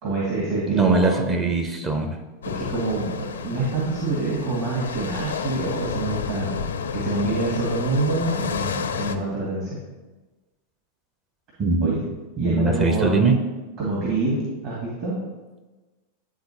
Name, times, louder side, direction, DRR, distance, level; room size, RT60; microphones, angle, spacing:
voice 1, 0.0-1.1 2.5-9.7 11.8-12.0 12.4-13.1 13.8-15.2, right 2 dB, 45° right, -6 dB, 2.1 m, -26 dB
voice 2, 0.6-2.2 11.6-12.0 12.4-13.4, right 3 dB, 25° right, 5 dB, 0.7 m, -21 dB
sound 1, 2.4-9.2, left 6 dB, 65° left, 0.4 m, -30 dB
11.5 x 3.8 x 2.9 m, 1.2 s
figure-of-eight pair, 90°, 0 cm